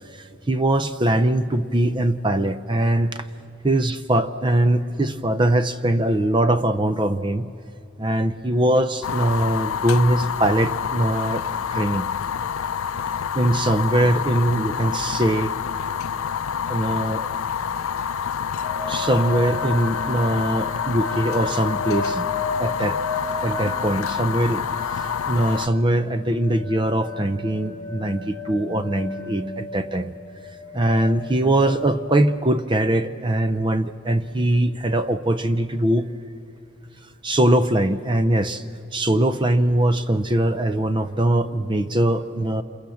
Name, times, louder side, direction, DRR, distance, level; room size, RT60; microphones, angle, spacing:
voice 1, 0.1-3.3 3.6-7.5 8.0-12.1 13.3-15.6 16.7-17.3 18.9-22.3 22.6-23.0 23.4-24.6 24.9-30.1 30.7-36.1 37.2-42.6, right 1 dB, 20° right, 12 dB, 0.6 m, -22 dB
Fire, 9.0-25.7, left 7 dB, 80° left, 0.5 m, -28 dB
sound 1, 18.6-32.4, left 3 dB, 20° left, 2.1 m, -34 dB
27.5 x 23.0 x 7.1 m, 2.8 s
head